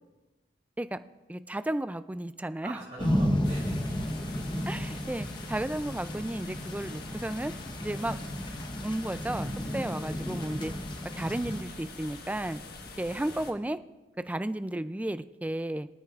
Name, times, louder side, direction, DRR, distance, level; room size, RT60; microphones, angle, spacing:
voice 1, 1.3-2.8 4.7-7.5 7.8-8.2 8.8-10.7 11.2-12.6 13.0-13.8 14.3-15.9, right 1 dB, 10° right, 12 dB, 0.3 m, -33 dB
voice 2, 2.6-4.1 5.0-5.3 7.9-8.3 13.1-13.5, right 2 dB, 40° right, -5 dB, 3.0 m, -45 dB
sound 1, 3.0-11.6, equal, 25° left, 0.9 m, -33 dB
sound 2, 3.4-13.5, left 3 dB, 60° left, 1.3 m, -45 dB
23.5 x 9.3 x 2.4 m, 1.1 s
head